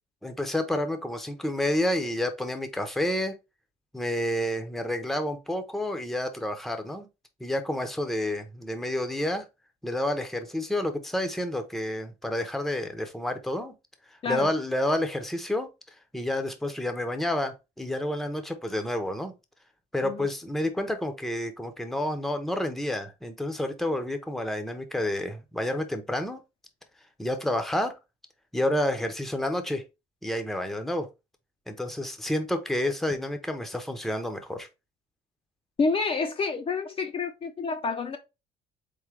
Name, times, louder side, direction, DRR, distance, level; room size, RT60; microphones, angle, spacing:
voice 1, 0.2-3.3 3.9-7.1 7.4-9.5 9.8-13.7 14.3-15.7 16.1-19.3 19.9-26.4 27.2-27.9 28.5-29.8 30.2-31.1 31.7-34.7, left 1 dB, ahead, 0.7 m, -29 dB
voice 2, 35.8-38.2, left 4 dB, 35° left, 0.6 m, -28 dB
3.9 x 3.7 x 3.2 m
cardioid pair, 110°, 17 cm